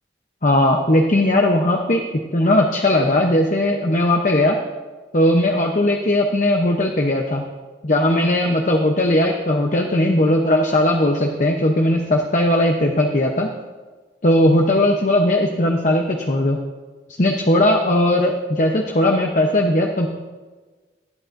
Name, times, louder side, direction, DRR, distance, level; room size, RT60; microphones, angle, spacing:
voice 1, 0.4-2.0 2.3-4.6 5.1-7.4 7.8-13.5 14.2-16.6 17.2-20.1, left 1 dB, 45° left, 2 dB, 0.9 m, -18 dB
19.0 x 13.0 x 2.6 m, 1.3 s
head